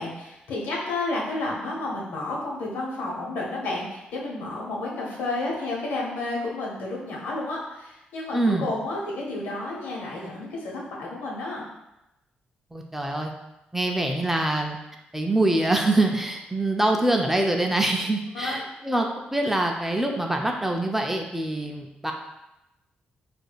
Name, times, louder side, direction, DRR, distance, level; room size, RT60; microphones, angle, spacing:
voice 1, 0.0-11.7 18.3-18.5, left 2 dB, 85° left, -4 dB, 1.0 m, -31 dB
voice 2, 8.3-8.7 12.7-13.3 13.7-14.8 15.1-22.1, right 2 dB, 10° right, 2 dB, 0.5 m, -24 dB
4.8 x 2.5 x 2.3 m, 0.91 s
cardioid pair, 70°, 3 cm